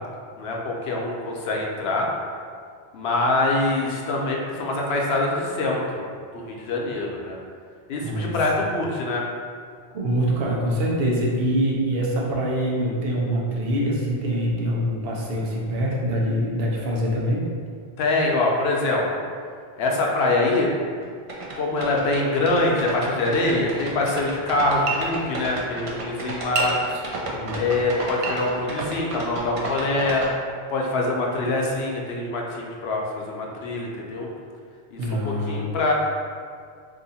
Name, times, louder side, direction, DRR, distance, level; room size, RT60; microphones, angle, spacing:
voice 1, 0.4-2.1 2.9-6.0 6.3-7.4 7.9-9.2 18.0-19.0 19.8-20.8 21.6-26.8 27.5-30.2 30.7-34.3 34.9-35.9, left 2 dB, 75° left, -1 dB, 0.8 m, -24 dB
voice 2, 8.0-8.6 9.9-17.5 26.9-27.6 35.0-35.7, equal, 70° right, -3 dB, 0.9 m, -25 dB
sound 1, 21.0-21.1 21.3-30.3, right 3 dB, 50° right, 0.4 m, -30 dB
2.7 x 2.5 x 4.0 m, 2.1 s
omnidirectional pair, 1.1 m